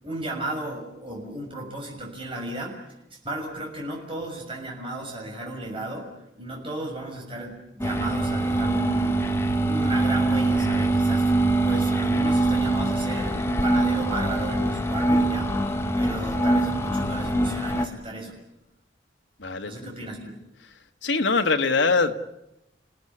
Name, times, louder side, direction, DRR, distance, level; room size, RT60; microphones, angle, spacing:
voice 1, 0.0-2.8 3.1-6.1 6.4-9.3 9.7-15.5 16.0-18.3 19.6-20.3, right 1 dB, 30° right, -1 dB, 6.6 m, -34 dB
sound 1, 7.8-17.9, right 2 dB, 15° left, 1.5 m, -23 dB
voice 2, 19.4-19.9 21.0-22.1, left 4 dB, 90° left, 5 dB, 1.8 m, -23 dB
29.5 x 18.0 x 10.0 m, 0.92 s
head